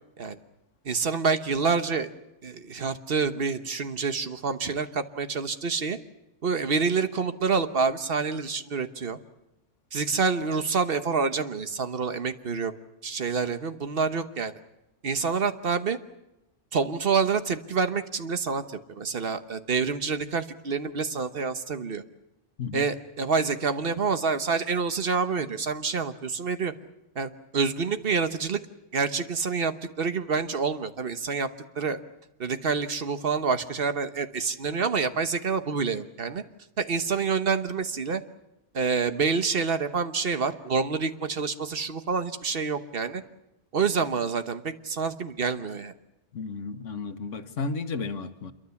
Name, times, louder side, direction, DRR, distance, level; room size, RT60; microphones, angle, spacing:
voice 1, 0.8-2.1 2.4-6.0 6.4-9.2 9.9-12.7 13.0-14.5 15.0-16.0 16.7-22.0 22.7-26.7 27.1-28.6 28.9-31.5 31.7-32.0 32.4-36.4 36.8-38.2 38.7-43.2 43.7-45.9, right 5 dB, 50° right, 10 dB, 1.3 m, -27 dB
voice 2, 46.3-48.5, left 4 dB, 85° left, 10 dB, 1.6 m, -33 dB
27.0 x 23.0 x 7.1 m, 0.91 s
omnidirectional pair, 1.2 m